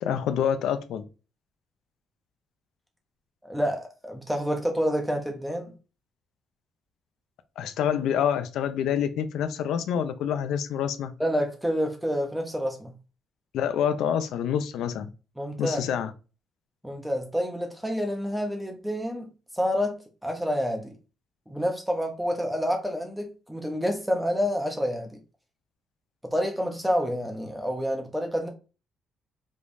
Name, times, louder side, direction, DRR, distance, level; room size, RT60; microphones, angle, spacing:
voice 1, 0.0-1.0 7.6-11.1 13.5-15.1 15.6-16.1, left 8 dB, 85° left, 0.6 m, -27 dB
voice 2, 3.4-5.7 11.2-12.9 15.4-15.8 16.8-19.3 19.5-20.9 21.5-25.2 26.2-28.5, equal, 5° right, 0.8 m, -28 dB
5.2 x 3.2 x 2.6 m
cardioid pair, 175°, 0 cm